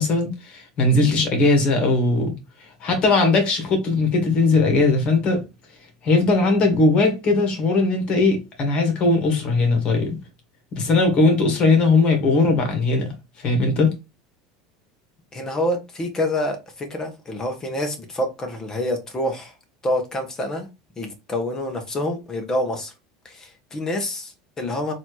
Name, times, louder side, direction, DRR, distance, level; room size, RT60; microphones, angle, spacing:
voice 1, 0.0-5.4 6.0-10.2 10.7-13.1 13.4-13.9, left 3 dB, 45° left, 1.8 m, -19 dB
voice 2, 15.3-19.5 19.8-20.7 21.0-22.9 23.2-24.9, left 1 dB, 25° left, 1.3 m, -27 dB
4.1 x 2.9 x 3.2 m
hypercardioid pair, 90°, 2 cm